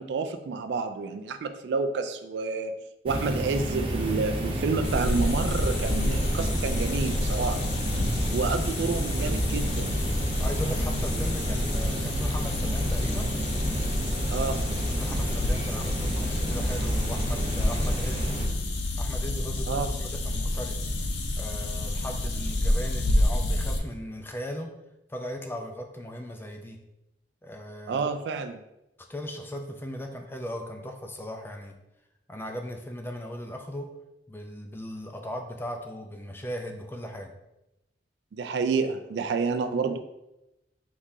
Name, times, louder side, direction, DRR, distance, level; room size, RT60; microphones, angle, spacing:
voice 1, 0.0-2.7 3.0-7.6 8.3-9.9 14.3-14.6 19.7-19.9 27.9-28.6 38.3-40.0, right 4 dB, 70° right, 8 dB, 0.3 m, -29 dB
sound 1, 3.1-18.5, right 1 dB, 30° right, 0.6 m, -31 dB
sound 2, 4.0-17.1, left 1 dB, 45° left, 1.2 m, -48 dB
sound 3, 4.8-23.8, left 1 dB, 75° left, 0.6 m, -29 dB
voice 2, 8.2-8.7 10.4-13.3 14.9-18.3 19.0-20.8 21.4-24.7 25.1-26.8 27.4-28.1 29.1-31.7 32.3-33.9 34.3-37.3, equal, 15° left, 4 dB, 0.5 m, -38 dB
4.7 x 3.7 x 2.7 m, 0.90 s
head